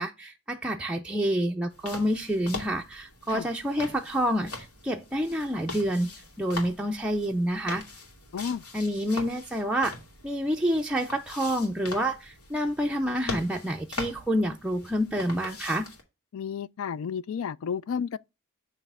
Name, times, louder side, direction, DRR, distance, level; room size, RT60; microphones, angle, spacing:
voice 1, 0.0-6.1 6.4-7.8 8.7-9.9 10.2-15.9, equal, 5° right, 0.4 m, -28 dB
sound 1, 1.7-16.0, left 2 dB, 85° left, 2.2 m, -42 dB
voice 2, 16.3-18.2, left 7 dB, 65° left, 0.3 m, -32 dB
9.4 x 3.3 x 5.4 m
head